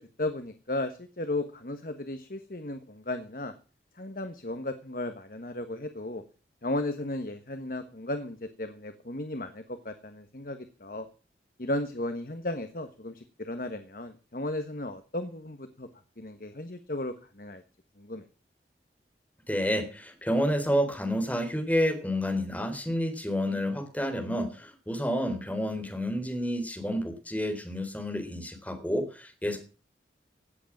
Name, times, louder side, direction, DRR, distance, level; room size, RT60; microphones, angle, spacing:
voice 1, 0.0-3.5 4.0-6.2 6.6-11.1 11.6-15.9 16.2-17.6 18.0-18.2, left 1 dB, 50° left, 8 dB, 1.4 m, -35 dB
voice 2, 19.5-29.6, equal, 10° left, 4 dB, 3.7 m, -29 dB
17.0 x 8.2 x 7.3 m, 0.36 s
head